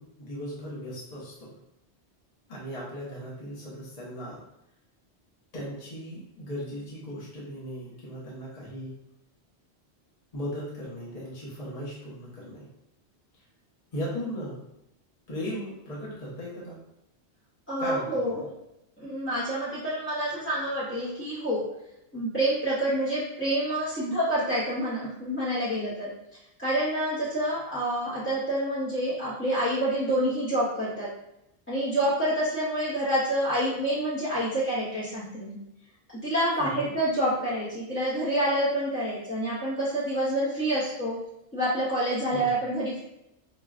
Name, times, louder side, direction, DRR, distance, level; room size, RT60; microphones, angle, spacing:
voice 1, 0.0-1.6 2.5-4.4 5.5-9.0 10.3-12.7 13.9-14.6 15.3-16.8 17.8-18.4 36.5-36.9 42.3-42.5, equal, 35° left, -6 dB, 1.0 m, -37 dB
voice 2, 17.7-18.5 19.0-21.7 22.1-26.1 26.6-31.1 31.7-35.6 36.2-41.2 41.5-43.0, right 1 dB, 15° left, -10 dB, 0.6 m, -27 dB
5.8 x 2.2 x 2.4 m, 0.86 s
omnidirectional pair, 1.1 m